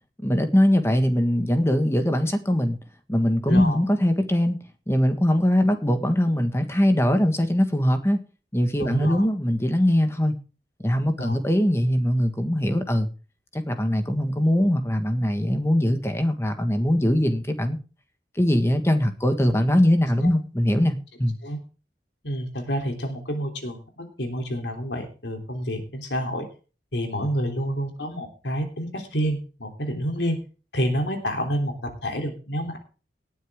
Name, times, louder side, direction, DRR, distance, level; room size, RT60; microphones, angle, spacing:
voice 1, 0.2-2.8 3.1-4.6 4.9-8.2 8.5-10.3 10.8-13.1 13.5-17.8 18.4-21.4, equal, 15° left, 7 dB, 1.6 m, -21 dB
voice 2, 3.5-3.8 8.8-9.2 11.2-11.4 21.4-21.6 22.2-26.5 26.9-30.4 30.7-32.8, equal, 85° left, 4 dB, 3.3 m, -28 dB
18.0 x 9.4 x 3.7 m, 0.35 s
head